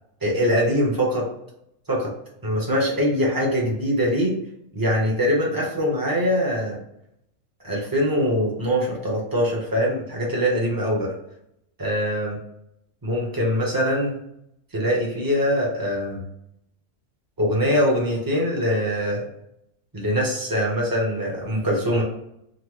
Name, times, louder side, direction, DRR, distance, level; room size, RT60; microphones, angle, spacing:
voice 1, 0.2-1.3 1.9-2.1 2.4-4.4 4.7-6.8 7.6-11.1 11.8-12.4 13.0-14.1 14.7-16.2 17.4-19.3 19.9-22.0, equal, 20° right, -3 dB, 0.7 m, -23 dB
3.7 x 2.1 x 3.1 m, 0.78 s
omnidirectional pair, 1.4 m